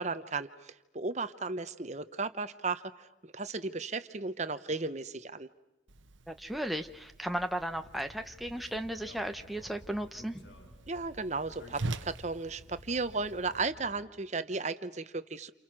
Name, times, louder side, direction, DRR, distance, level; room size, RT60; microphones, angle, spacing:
voice 1, 0.0-3.1 3.3-5.5 10.9-15.5, right 3 dB, 35° right, 11 dB, 1.0 m, -35 dB
Whoosh swoosh swish, 5.9-13.6, right 2 dB, 85° right, 1.1 m, -45 dB
voice 2, 6.3-10.5, right 1 dB, ahead, 5 dB, 1.0 m, -35 dB
sound 1, 7.7-14.1, left 1 dB, 65° left, 6.6 m, -54 dB
29.5 x 29.0 x 6.2 m, 0.96 s
head